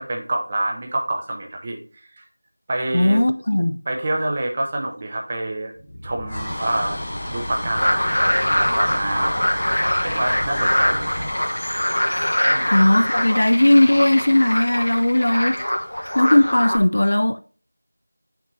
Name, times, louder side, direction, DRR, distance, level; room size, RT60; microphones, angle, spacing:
voice 1, 0.0-1.8 2.2-2.3 2.7-3.2 3.9-5.7 6.0-7.0 7.3-11.3 12.5-12.7, right 1 dB, 20° right, 0.6 m, -27 dB
voice 2, 2.9-3.8 12.7-15.6 16.1-17.4, left 1 dB, 50° left, 0.3 m, -17 dB
sound 1, 5.8-16.3, left 1 dB, 30° left, 1.2 m, -32 dB
sound 2, 7.8-16.8, equal, 85° left, 1.0 m, -23 dB
6.4 x 5.8 x 2.7 m
figure-of-eight pair, 175°, 0 cm